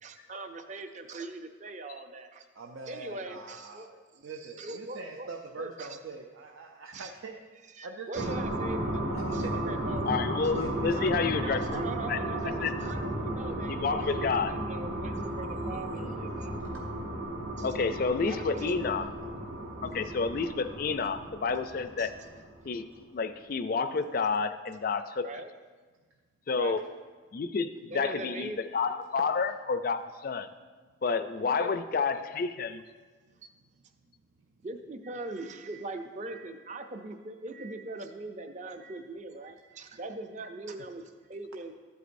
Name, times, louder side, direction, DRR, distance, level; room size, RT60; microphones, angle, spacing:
voice 1, 0.0-2.4 2.9-3.9 4.4-5.3 5.6-5.9 6.9-7.1 7.8-9.0 9.3-10.1 10.9-16.5 17.6-17.7 18.3-18.8 22.0-22.1 25.2-25.5 26.5-26.8 27.9-28.6 31.4-32.2 34.6-41.7, right 2 dB, 35° right, 7 dB, 0.5 m, -41 dB
voice 2, 2.6-7.4 7.8-8.3 9.3-9.8 10.6-11.0 16.6-16.7 33.6-33.7, right 4 dB, 85° right, 2 dB, 0.5 m, -43 dB
sound 1, 8.1-22.9, right 1 dB, 65° right, 1.2 m, -34 dB
voice 3, 10.1-11.8 12.1-12.2 12.6-12.7 13.7-14.5 17.6-19.1 19.8-22.1 22.6-25.3 26.5-26.9 27.3-30.5 31.0-32.8, left 5 dB, 45° left, 11 dB, 0.3 m, -30 dB
13.0 x 8.1 x 2.6 m, 1.4 s
head